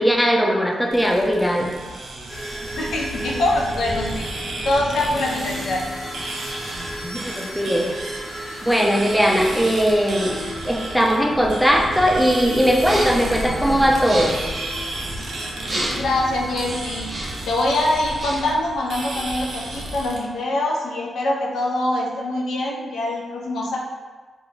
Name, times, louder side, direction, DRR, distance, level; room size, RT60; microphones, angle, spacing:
voice 1, 0.0-1.7 7.0-7.9 8.6-10.4 10.6-14.4, equal, ahead, 0 dB, 0.4 m, -19 dB
sound 1, 0.9-20.2, right 1 dB, 80° right, 0.4 m, -33 dB
sound 2, 2.3-17.9, equal, 40° left, 0.9 m, -35 dB
voice 2, 2.8-4.3 4.6-5.8 15.9-17.1 17.5-23.8, left 1 dB, 85° left, -3 dB, 0.4 m, -24 dB
sound 3, 12.8-13.3 13.9-14.5 15.6-16.1 16.9-17.5 18.0-18.6, right 1 dB, 50° right, 0.8 m, -29 dB
2.3 x 2.0 x 3.1 m, 1.3 s
cardioid pair, 65°, 0 cm